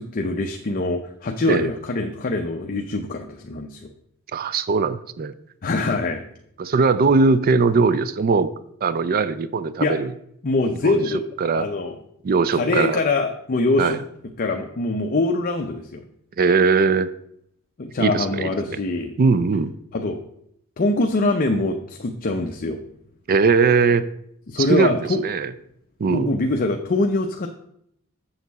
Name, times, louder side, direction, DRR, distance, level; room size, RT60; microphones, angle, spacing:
voice 1, 0.0-3.9 5.6-6.2 9.8-10.0 10.4-11.3 11.5-12.0 12.5-14.0 14.4-16.1 17.8-19.1 19.9-20.2 20.8-22.8 24.5-25.2 26.1-27.5, left 2 dB, 40° left, 3 dB, 0.6 m, -23 dB
voice 2, 4.3-5.3 6.6-8.5 8.8-10.1 10.8-11.0 11.4-11.7 12.2-13.0 13.8-14.0 16.4-17.1 18.0-18.8 19.2-19.7 23.3-24.1 24.6-25.5 26.0-26.3, right 4 dB, 40° right, 15 dB, 0.4 m, -20 dB
7.2 x 6.6 x 4.0 m, 0.72 s
head